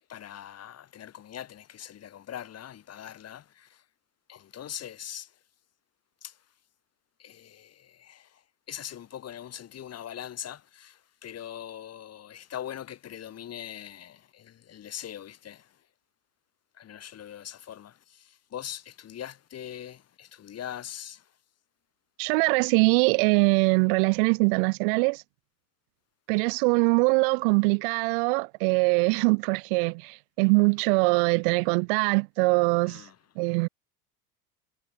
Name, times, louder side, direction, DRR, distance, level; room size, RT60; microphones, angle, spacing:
voice 1, 0.1-3.8 4.3-5.3 6.2-6.4 7.2-8.4 8.7-15.7 16.7-21.3 32.8-33.1, left 10 dB, 30° left, 4.3 m, -42 dB
voice 2, 22.2-25.2 26.3-33.0 33.4-33.7, right 33 dB, 40° right, 0.4 m, -23 dB
figure-of-eight pair, 80°, 46 cm